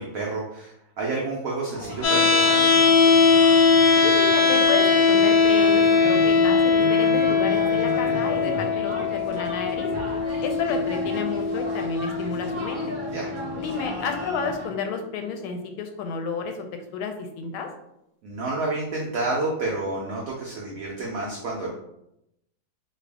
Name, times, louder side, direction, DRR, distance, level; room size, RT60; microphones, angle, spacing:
voice 1, 0.0-2.6 13.1-13.3 18.2-21.7, right 2 dB, 85° right, -3 dB, 0.7 m, -29 dB
sound 1, 1.7-14.7, equal, 15° right, 0.6 m, -36 dB
sound 2, 2.0-14.0, left 5 dB, 65° left, 1.0 m, -20 dB
voice 2, 4.0-9.9 10.4-12.9 13.5-16.6 16.9-17.7, left 5 dB, 85° left, 5 dB, 1.4 m, -31 dB
3.3 x 2.3 x 3.4 m, 0.83 s
omnidirectional pair, 2.2 m